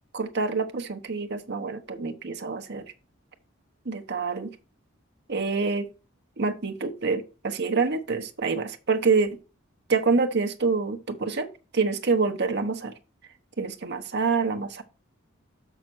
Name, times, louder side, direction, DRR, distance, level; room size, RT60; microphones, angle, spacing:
voice 1, 0.1-2.8 3.8-4.5 5.3-5.9 6.4-9.4 9.9-12.9 13.6-14.8, right 4 dB, 55° right, 1.0 m, -26 dB
6.4 x 6.0 x 6.0 m
head